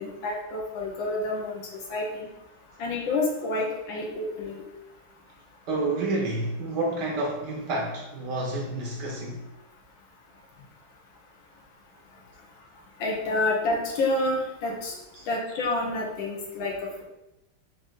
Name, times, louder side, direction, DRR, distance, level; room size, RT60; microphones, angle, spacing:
voice 1, 0.0-2.3 2.8-4.6 13.0-15.0 15.3-17.0, left 2 dB, 75° left, -1 dB, 1.6 m, -29 dB
voice 2, 5.7-9.4 15.2-15.3, right 2 dB, 65° right, -1 dB, 1.2 m, -29 dB
5.1 x 2.6 x 3.7 m, 0.93 s
omnidirectional pair, 2.2 m